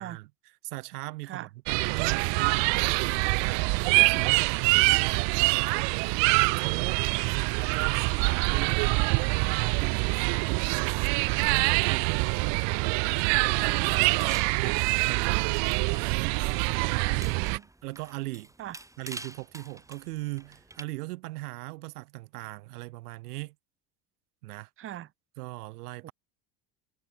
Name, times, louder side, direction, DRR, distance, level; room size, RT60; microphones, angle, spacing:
voice 1, 0.0-2.8 3.0-7.0 7.7-12.7 13.0-14.8 15.0-15.7 16.8-17.1 17.8-18.5 19.0-23.5 24.4-24.7 25.4-26.1, right 20 dB, 90° right, 3.6 m, -39 dB
sound 1, 1.7-17.6, right 32 dB, 70° right, 0.9 m, -25 dB
sound 2, 13.5-20.8, right 2 dB, 5° right, 1.5 m, -48 dB
voice 2, 17.1-17.7 18.6-18.7 24.8-25.1 26.0-26.1, right 12 dB, 30° right, 0.5 m, -42 dB
supercardioid pair, 80°, 44 cm